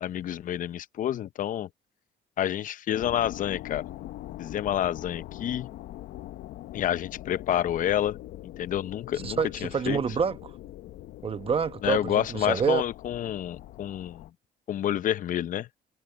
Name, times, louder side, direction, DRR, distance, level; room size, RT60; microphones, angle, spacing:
voice 1, 0.0-1.7 2.4-3.9 4.4-5.7 6.7-8.2 8.6-10.0 11.8-14.3 14.7-15.7, left 11 dB, 50° left, 0.7 m, -29 dB
sound 1, 2.9-14.3, left 14 dB, 75° left, 1.0 m, -42 dB
voice 2, 9.2-10.5 11.2-12.8, right 6 dB, 35° right, 1.0 m, -27 dB
cardioid pair, 110°, 17 cm